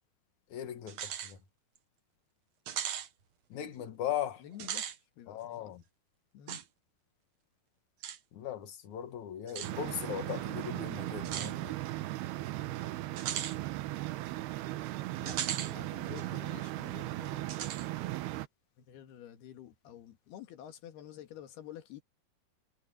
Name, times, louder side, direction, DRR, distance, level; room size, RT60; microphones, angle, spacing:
voice 1, 0.5-1.4 3.5-4.4 5.3-5.8 8.3-11.8, left 10 dB, 55° left, 2.8 m, -38 dB
sound 1, 0.9-1.3 1.8-1.9 2.7-3.1 4.5-5.0 6.5-6.6 8.0-8.2 9.5-9.7 11.3-11.5 13.2-13.6 15.3-15.7 16.2-16.3 17.5-17.9, right 10 dB, 60° right, 2.0 m, -37 dB
voice 2, 4.4-5.7 6.3-6.6 15.2-17.6 18.8-22.0, left 11 dB, 85° left, 3.8 m, -50 dB
sound 2, 9.6-18.5, right 16 dB, 90° right, 3.0 m, -37 dB
omnidirectional pair, 4.4 m